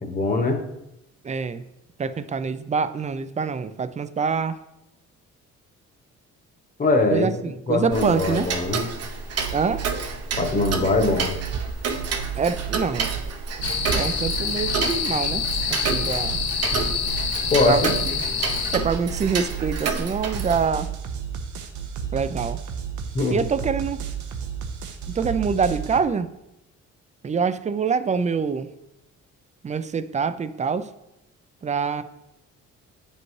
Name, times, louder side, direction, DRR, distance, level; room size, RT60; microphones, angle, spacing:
voice 1, 0.1-0.6 6.8-7.3 7.7-8.8 10.4-11.3 17.5-17.9 23.1-23.4, left 3 dB, 30° left, 4 dB, 1.2 m, -22 dB
voice 2, 1.2-1.6 2.0-4.6 7.1-8.5 9.5-9.8 12.4-13.1 13.9-16.4 17.6-18.3 18.7-20.9 22.1-22.6 23.3-24.0 25.1-26.3 27.2-28.7 29.6-30.9 31.6-32.0, right 5 dB, 25° right, 13 dB, 0.4 m, -25 dB
Tick-tock, 7.9-20.7, right 5 dB, 55° right, 0.8 m, -30 dB
sound 1, 9.4-9.9 10.3-11.6 11.9-13.2 13.6-14.8 15.2-16.5 16.8-18.1 18.5-19.7 20.1-26.0, right 9 dB, 80° right, 0.8 m, -32 dB
sound 2, 13.6-18.8, left 7 dB, 65° left, 1.0 m, -27 dB
8.2 x 5.3 x 3.2 m, 0.88 s
cardioid pair, 90°, 30 cm